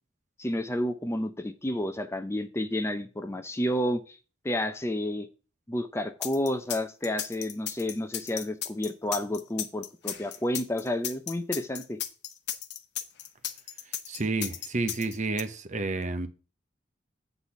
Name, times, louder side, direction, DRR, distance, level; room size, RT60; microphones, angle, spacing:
voice 1, 0.4-4.2 4.4-5.3 5.7-12.0, left 1 dB, 15° left, 0.6 m, -30 dB
sound 1, 6.2-15.4, left 11 dB, 60° left, 0.8 m, -35 dB
voice 2, 14.1-16.3, right 3 dB, 40° right, 0.8 m, -30 dB
8.1 x 4.1 x 7.0 m
head